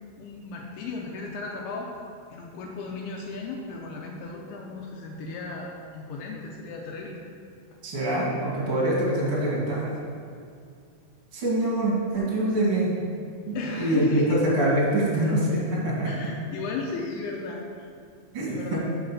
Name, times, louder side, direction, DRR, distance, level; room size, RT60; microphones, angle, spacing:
voice 1, 0.2-7.2 13.6-14.4 16.1-17.6 18.5-18.8, left 4 dB, 80° left, -1 dB, 2.4 m, -35 dB
voice 2, 7.8-9.9 11.3-13.0 13.5-16.1 18.3-18.8, right 1 dB, 50° right, -6 dB, 1.7 m, -24 dB
6.3 x 4.9 x 6.0 m, 2.3 s
omnidirectional pair, 4.8 m